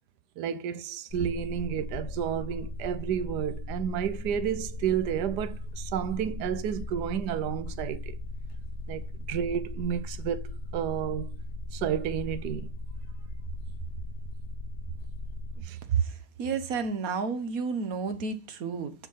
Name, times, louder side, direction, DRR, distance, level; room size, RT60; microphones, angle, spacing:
voice 1, 0.4-8.1 8.9-9.0 9.3-11.3 11.7-12.7 15.6-15.8, right 9 dB, 85° right, 1.3 m, -31 dB
sound 1, 1.1-15.6, left 2 dB, 50° left, 0.8 m, -37 dB
voice 2, 15.9-18.9, right 6 dB, 65° right, 1.5 m, -30 dB
9.7 x 4.9 x 5.5 m
omnidirectional pair, 1.7 m